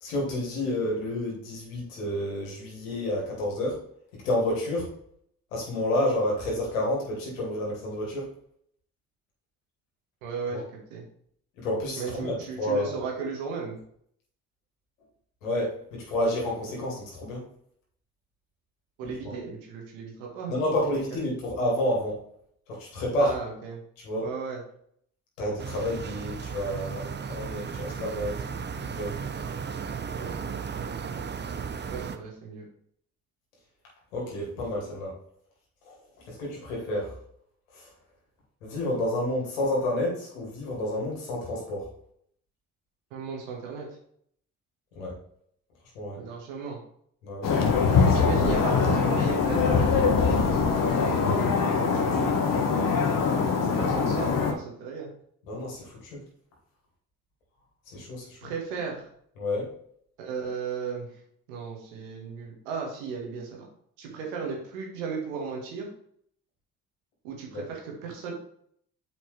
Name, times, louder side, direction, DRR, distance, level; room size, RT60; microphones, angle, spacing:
voice 1, 0.0-3.8 4.2-4.9 5.5-8.3 10.5-10.6 11.6-12.9 15.4-17.4 19.0-19.3 20.5-22.2 22.7-23.4 24.0-24.3 25.4-29.2 34.1-35.1 35.9-36.0 36.3-37.1 37.7-37.9 38.6-41.9 45.0-45.1 46.0-46.2 47.2-47.5 52.7-53.3 53.7-53.9 55.5-56.2 57.9-58.5 59.4-59.7 67.5-67.6, left 1 dB, 85° left, -3 dB, 2.3 m, -30 dB
voice 2, 10.2-11.0 12.0-13.8 19.0-20.8 23.2-23.8 24.2-24.6 30.2-30.5 30.7-30.9 31.9-32.7 43.1-43.9 46.2-46.8 48.0-52.4 53.7-55.1 58.4-59.0 60.2-61.1 61.5-63.7 64.0-65.9 67.2-68.3, right 5 dB, 80° right, 0 dB, 1.7 m, -36 dB
sound 1, 25.6-32.2, right 6 dB, 30° right, 0.7 m, -35 dB
sound 2, 47.4-54.5, left 5 dB, 55° left, 1.4 m, -23 dB
8.2 x 5.0 x 3.3 m, 0.66 s
hypercardioid pair, 45°, 38 cm